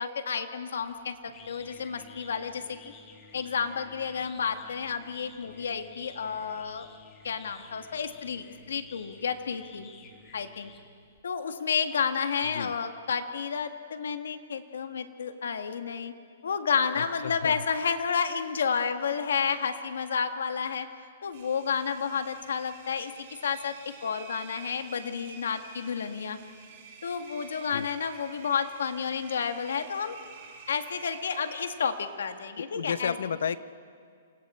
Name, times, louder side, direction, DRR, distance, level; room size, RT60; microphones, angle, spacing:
voice 1, 0.0-2.8 3.3-6.9 7.2-9.9 10.3-10.7 11.2-16.1 16.4-20.9 21.2-23.1 23.4-26.4 27.0-30.2 30.7-33.2, left 6 dB, 85° left, 8 dB, 1.7 m, -31 dB
sound 1, 0.8-11.2, left 5 dB, 15° left, 1.5 m, -52 dB
voice 2, 17.0-17.6 27.7-27.9 32.6-33.6, left 7 dB, 70° left, 15 dB, 0.8 m, -32 dB
Engine, 21.3-32.2, right 5 dB, 35° right, 4.0 m, -50 dB
29.5 x 28.0 x 4.4 m, 2.1 s
hypercardioid pair, 180°, 0 cm